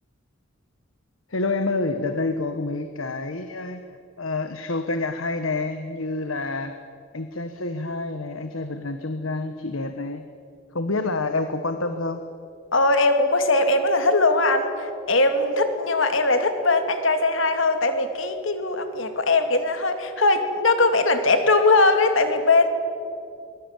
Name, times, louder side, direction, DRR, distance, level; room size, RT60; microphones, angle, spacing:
voice 1, 1.3-3.8 4.2-6.8 7.1-10.2 10.7-12.2, left 3 dB, 90° left, 8 dB, 1.4 m, -28 dB
voice 2, 12.7-22.7, left 2 dB, 75° left, 7 dB, 2.6 m, -20 dB
23.5 x 22.0 x 9.1 m, 2.4 s
head